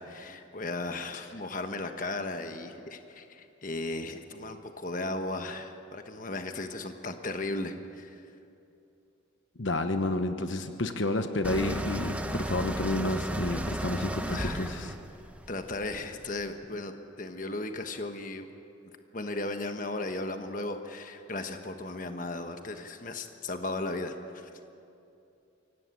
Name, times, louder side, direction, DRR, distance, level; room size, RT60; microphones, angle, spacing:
voice 1, 0.0-8.2 14.3-14.7 15.5-16.9 17.2-18.5 19.1-24.5, left 2 dB, 40° left, 6 dB, 1.2 m, -36 dB
voice 2, 9.6-14.9, left 2 dB, 65° left, 7 dB, 1.1 m, -30 dB
sound 1, 11.4-16.4, right 1 dB, 5° right, 0.8 m, -34 dB
24.0 x 17.5 x 8.4 m, 2.7 s
head